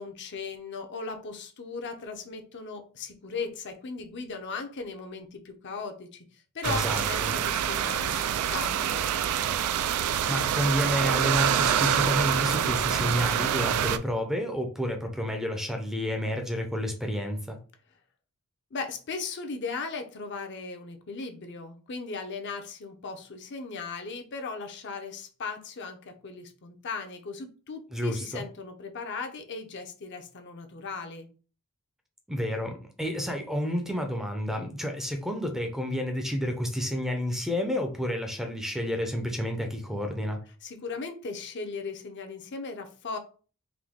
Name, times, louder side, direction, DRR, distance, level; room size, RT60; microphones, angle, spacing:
voice 1, 0.0-9.1 18.7-31.3 40.6-43.2, left 4 dB, 55° left, 5 dB, 0.7 m, -37 dB
voice 2, 6.6-7.4 9.9-17.6 27.9-28.4 32.3-40.4, equal, ahead, 5 dB, 0.5 m, -30 dB
sound 1, 6.6-14.0, right 9 dB, 85° right, 0.4 m, -26 dB
3.8 x 2.7 x 3.5 m, 0.37 s
head